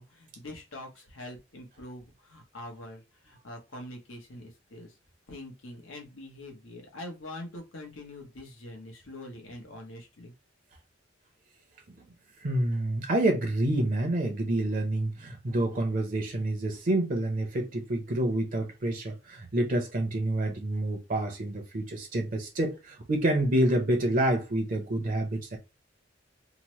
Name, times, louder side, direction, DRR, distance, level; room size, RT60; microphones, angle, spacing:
voice 1, 0.0-5.0 5.3-10.3, left 1 dB, 85° left, 0.9 m, -44 dB
voice 2, 12.4-25.6, right 1 dB, 45° right, 0.6 m, -28 dB
2.8 x 2.0 x 3.0 m
head